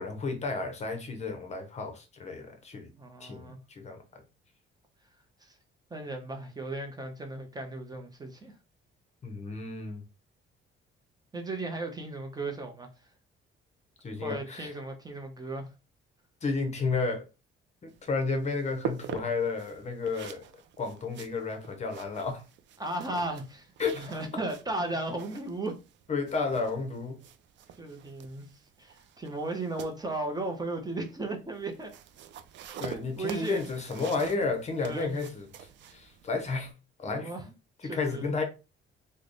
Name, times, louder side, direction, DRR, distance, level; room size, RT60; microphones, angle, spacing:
voice 1, 0.0-2.9 3.2-4.2 9.2-10.0 14.0-14.7 16.4-17.3 17.8-20.5 20.8-22.4 23.8-24.1 26.1-27.2 32.8-36.7 37.0-37.3 37.8-38.4, left 4 dB, 35° left, 0.7 m, -32 dB
voice 2, 3.0-3.6 5.4-5.6 5.9-8.6 11.3-12.9 14.2-15.7 22.8-25.7 27.8-31.9 32.7-33.6 34.8-35.2 37.1-37.5 37.8-38.3, right 2 dB, 20° right, 0.6 m, -36 dB
sound 1, 17.9-36.7, right 9 dB, 60° right, 0.4 m, -45 dB
3.3 x 2.1 x 3.8 m
cardioid pair, 140°, 21 cm